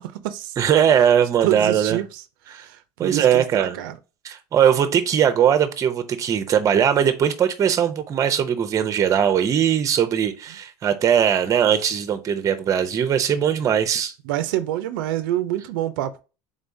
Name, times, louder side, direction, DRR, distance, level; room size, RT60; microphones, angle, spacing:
voice 1, 0.0-0.5 1.4-2.2 2.5-3.9 14.3-16.2, right 13 dB, 85° right, 0.4 m, -27 dB
voice 2, 0.6-2.0 2.5-2.6 3.0-3.8 4.2-14.1, right 8 dB, 30° right, 0.6 m, -20 dB
3.8 x 3.5 x 2.6 m
cardioid pair, 135°, 11 cm